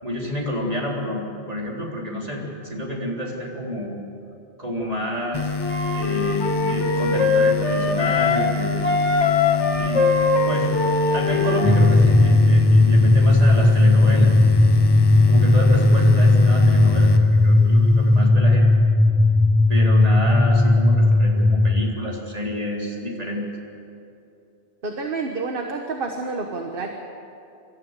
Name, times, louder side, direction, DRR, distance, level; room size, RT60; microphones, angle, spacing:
voice 1, 0.0-3.9 4.6-5.5 5.9-8.9 9.7-10.1 10.5-10.7 11.1-14.3 15.3-18.7 19.7-23.4, equal, 35° right, -3 dB, 3.9 m, -29 dB
sound 1, 5.3-18.3, left 3 dB, 35° left, 0.4 m, -28 dB
Wind instrument woodwind instrument, 5.6-8.5 8.8-12.0, left 4 dB, 90° left, 1.9 m, -22 dB
sound 2, 11.6-21.8, left 2 dB, ahead, 0.7 m, -16 dB
voice 2, 24.8-26.9, right 3 dB, 50° right, 3 dB, 1.5 m, -29 dB
25.5 x 13.5 x 8.2 m, 2.7 s
omnidirectional pair, 1.2 m